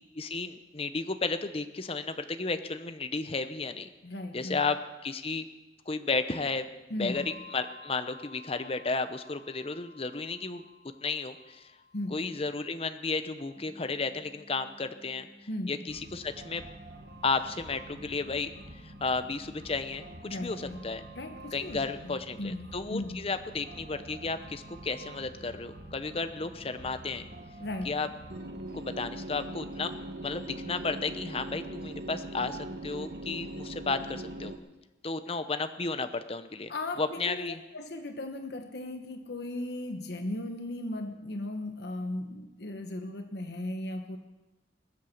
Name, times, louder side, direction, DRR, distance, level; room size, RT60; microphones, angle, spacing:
voice 1, 0.1-3.9 4.3-5.5 5.9-6.7 7.0-10.6 11.0-11.7 12.1-15.3 15.7-16.6 17.2-18.5 18.8-21.0 21.5-27.3 27.8-28.1 28.7-29.9 30.2-34.5 35.0-36.7 37.0-37.6, left 4 dB, 30° left, 10 dB, 0.8 m, -33 dB
voice 2, 4.0-4.6 6.9-7.3 11.9-12.2 15.5-15.7 20.3-20.8 21.1-23.3 27.6-28.0 36.7-44.2, left 1 dB, 60° left, 6 dB, 1.1 m, -37 dB
Bell, 7.1-14.0, left 3 dB, 85° right, 3.5 m, -54 dB
sound 1, 13.6-28.7, equal, 25° right, 1.7 m, -56 dB
sound 2, 15.9-34.6, right 1 dB, 60° right, 1.4 m, -44 dB
20.5 x 8.1 x 7.1 m, 1.1 s
head